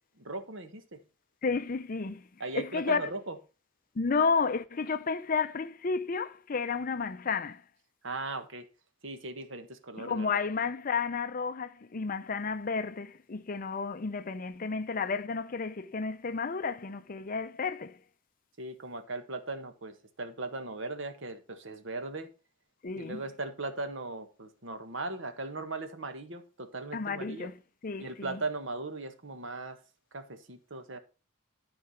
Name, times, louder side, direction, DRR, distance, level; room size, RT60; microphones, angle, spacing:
voice 1, 0.2-1.0 2.4-3.3 8.0-8.7 9.0-10.3 18.6-22.3 22.9-27.5 28.0-29.8 30.1-31.0, right 2 dB, 65° right, 1.5 m, -38 dB
voice 2, 1.4-2.2 2.5-3.0 4.0-7.6 10.0-18.0 22.8-23.2 26.9-27.6 27.8-28.4, left 5 dB, 40° left, 0.6 m, -32 dB
13.0 x 4.8 x 5.8 m
head